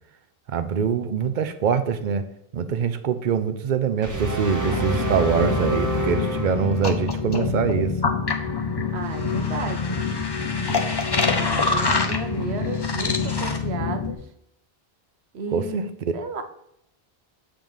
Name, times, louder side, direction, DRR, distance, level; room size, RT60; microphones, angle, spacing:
voice 1, 0.5-2.3 2.5-8.0 15.5-15.9, right 7 dB, 55° right, 10 dB, 0.7 m, -24 dB
sound 1, 4.0-7.2, right 2 dB, 20° right, 0.8 m, -28 dB
sound 2, 4.6-14.1, left 4 dB, 30° left, 0.6 m, -25 dB
voice 2, 8.9-10.0 11.3-14.3 15.3-15.8 16.1-16.4, right 3 dB, 90° right, 7 dB, 1.1 m, -33 dB
7.5 x 3.4 x 5.4 m, 0.77 s
omnidirectional pair, 1.0 m